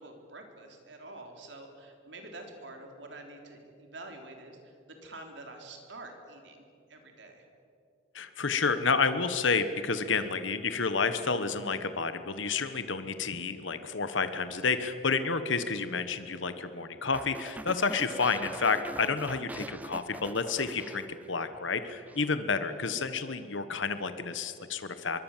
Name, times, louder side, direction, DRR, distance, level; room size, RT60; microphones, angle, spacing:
voice 1, 0.0-7.5 22.8-23.0, right 2 dB, 65° right, 3 dB, 3.8 m, -47 dB
voice 2, 8.1-25.2, left 4 dB, 80° left, 10 dB, 1.3 m, -30 dB
sound 1, 17.1-21.6 21.9-22.3, right 1 dB, 10° right, 0.5 m, -43 dB
25.0 x 23.0 x 7.4 m, 2.6 s
head